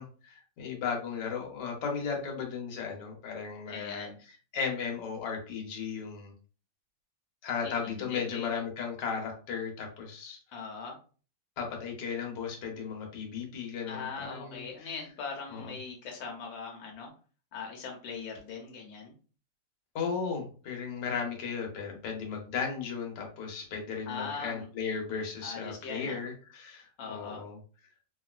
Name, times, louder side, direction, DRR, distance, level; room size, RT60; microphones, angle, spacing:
voice 1, 0.0-4.1 4.5-6.3 7.4-10.4 11.6-14.9 15.5-15.7 19.9-27.6, left 6 dB, 70° left, 1 dB, 1.4 m, -35 dB
voice 2, 3.7-4.2 7.6-8.5 10.5-11.0 13.9-17.1 17.5-19.1 24.1-24.7 25.4-26.2 27.0-27.4, left 5 dB, 90° left, 1 dB, 1.4 m, -40 dB
3.0 x 2.5 x 2.3 m, 0.38 s
omnidirectional pair, 2.0 m